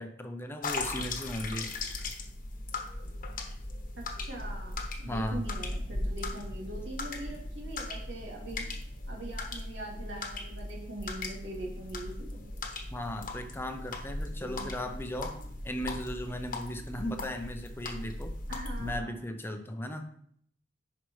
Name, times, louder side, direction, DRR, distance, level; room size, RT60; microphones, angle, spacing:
voice 1, 0.0-1.7 5.1-5.4 12.9-15.3 15.6-18.3 18.8-20.1, equal, 15° left, 6 dB, 0.6 m, -36 dB
sound 1, 0.6-19.0, left 2 dB, 50° left, 1.1 m, -38 dB
voice 2, 4.0-8.7 9.1-12.4 14.4-14.7 18.5-19.2, right 1 dB, 90° right, -3 dB, 2.6 m, -42 dB
10.5 x 5.1 x 3.2 m, 0.65 s
head